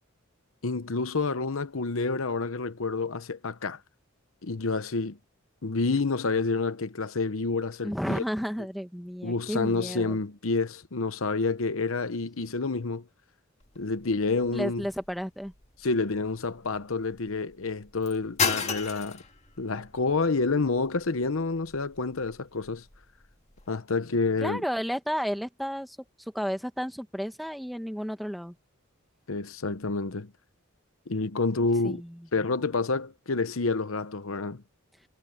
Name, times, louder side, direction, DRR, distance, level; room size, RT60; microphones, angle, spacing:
voice 1, 0.6-3.8 4.4-5.2 5.6-8.2 9.2-13.0 13.8-14.8 15.8-19.2 19.6-22.8 23.7-24.6 29.3-30.3 31.1-32.0 32.3-34.6, left 3 dB, 75° left, 0.9 m, -28 dB
voice 2, 7.8-10.2 14.5-15.5 24.4-26.0 26.3-28.5 31.8-32.3, equal, ahead, 1.4 m, -32 dB
sound 1, 13.6-23.7, left 6 dB, 30° left, 2.2 m, -37 dB
head